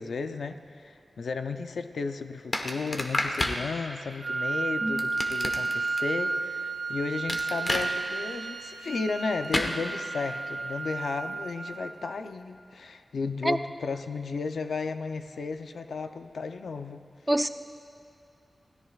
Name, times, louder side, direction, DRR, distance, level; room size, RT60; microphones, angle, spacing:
voice 1, 0.0-17.0, left 4 dB, 90° left, 8 dB, 0.6 m, -34 dB
sound 1, 2.5-3.6 5.0-6.0 7.3-7.9 9.5-9.7, left 1 dB, 35° left, 1.2 m, -29 dB
Wind instrument woodwind instrument, 4.2-12.2, right 3 dB, 75° right, 0.9 m, -32 dB
voice 2, 4.8-5.0 13.4-13.6 17.3-17.5, right 1 dB, 10° right, 9 dB, 0.5 m, -25 dB
27.5 x 17.0 x 2.4 m, 2.6 s
wide cardioid pair, 125°, 0 cm